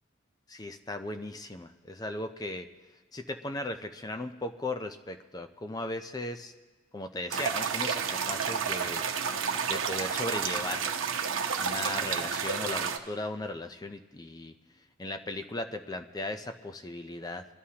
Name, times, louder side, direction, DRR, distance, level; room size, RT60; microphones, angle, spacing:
voice 1, 0.5-2.7 3.1-6.5 6.9-9.4 9.7-10.9 11.6-14.5 15.0-17.5, left 1 dB, 20° left, 7 dB, 0.4 m, -37 dB
sound 1, 7.3-13.0, right 6 dB, 80° right, 0.8 m, -31 dB
22.5 x 13.0 x 2.8 m, 1.3 s
head